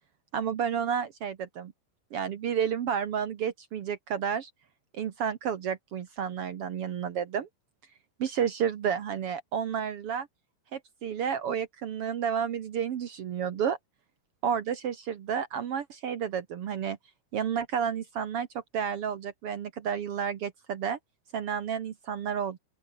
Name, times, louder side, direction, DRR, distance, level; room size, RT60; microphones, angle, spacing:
voice 1, 0.3-1.7 2.1-4.5 4.9-7.5 8.2-10.3 10.7-13.8 14.4-17.0 17.3-18.5 18.7-21.0 21.3-22.6, right 8 dB, 85° right, 1.3 m, -31 dB
open air
omnidirectional pair, 4.7 m